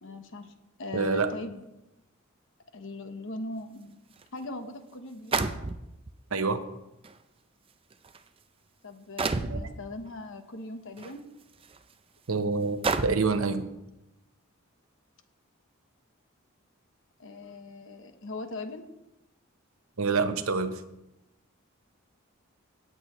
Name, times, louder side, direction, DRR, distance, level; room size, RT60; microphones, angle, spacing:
voice 1, 0.0-0.5 0.8-1.7 2.7-3.9 4.3-5.4 8.8-11.2 17.2-18.9, left 2 dB, 65° left, 7 dB, 1.1 m, -40 dB
voice 2, 0.9-1.3 6.3-6.6 9.5-9.7 12.3-13.7 20.0-20.8, right 4 dB, 75° right, 9 dB, 0.8 m, -27 dB
sound 1, 4.2-4.3 5.3-6.1 7.0-7.1 7.9-8.2 9.2-9.7 11.0-11.1 11.7-11.8 12.8-13.4, right 4 dB, 25° right, 0.5 m, -29 dB
17.5 x 8.0 x 3.1 m, 0.94 s
head